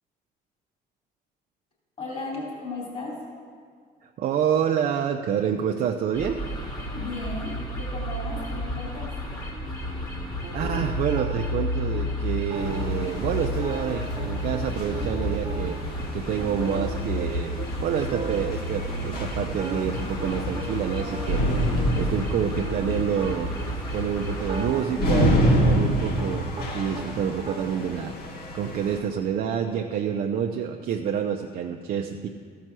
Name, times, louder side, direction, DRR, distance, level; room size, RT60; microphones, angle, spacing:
voice 1, 2.0-3.2 6.9-9.1, left 3 dB, 40° left, -3 dB, 3.4 m, -35 dB
voice 2, 4.0-6.4 10.5-15.8 16.1-23.6 23.9-32.3, right 8 dB, 60° right, 3 dB, 0.6 m, -28 dB
sound 1, 6.1-24.7, equal, 25° left, 1.8 m, -32 dB
sound 2, 9.5-11.7 11.9-12.0 12.4-14.6 14.9-17.3 17.6-17.7 17.9-18.6 18.9-20.7 21.0-23.7 24.3-26.7 26.9-27.6, right 3 dB, 35° right, 1.2 m, -37 dB
sound 3, 12.5-29.0, equal, 65° left, 1.6 m, -29 dB
14.0 x 5.6 x 6.1 m, 2.1 s
cardioid pair, 110°, 17 cm